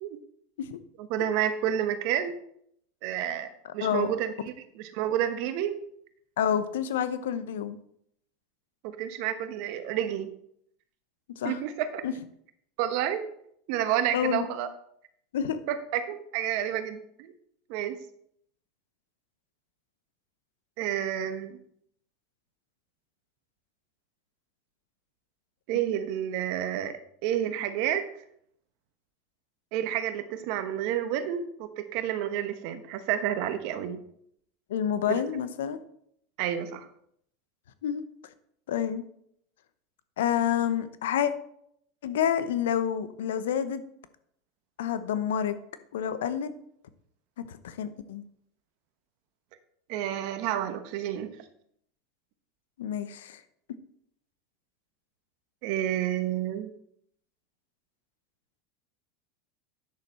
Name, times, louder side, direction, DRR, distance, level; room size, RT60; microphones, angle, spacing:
voice 1, 1.0-2.4 3.0-3.5 3.7-5.8 8.8-10.3 11.4-12.0 12.8-13.3 13.7-14.7 15.7-17.3 17.7-18.0 20.8-21.6 25.7-26.9 27.2-28.1 29.7-34.0 35.1-35.2 36.4-36.9 49.9-51.4 55.6-56.7, right 10 dB, 60° right, 10 dB, 1.0 m, -30 dB
voice 2, 3.6-4.1 6.4-7.8 11.4-11.6 12.0-12.1 14.1-14.5 15.3-15.6 34.7-35.8 37.8-38.0 38.7-39.0 40.2-41.3 42.0-43.8 44.8-45.5 45.9-46.5 47.4-48.2 52.8-53.4, left 9 dB, 80° left, 12 dB, 0.8 m, -28 dB
9.5 x 6.7 x 4.3 m, 0.70 s
hypercardioid pair, 95°, 0 cm